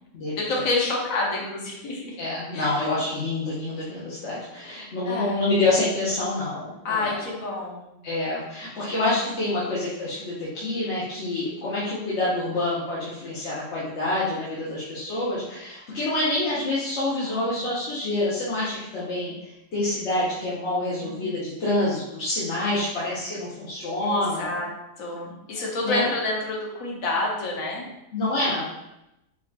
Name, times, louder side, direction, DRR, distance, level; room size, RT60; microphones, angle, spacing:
voice 1, 0.4-2.2 2.5-3.0 5.1-5.4 6.8-7.8 9.0-9.2 17.2-17.6 21.0-21.3 23.8-24.7 25.0-27.9, left 2 dB, 85° left, -2 dB, 1.2 m, -29 dB
voice 2, 2.2-7.2 8.0-24.7 25.6-26.1 28.1-28.7, left 2 dB, 60° left, -8 dB, 1.1 m, -27 dB
4.7 x 2.7 x 2.2 m, 0.88 s
omnidirectional pair, 1.4 m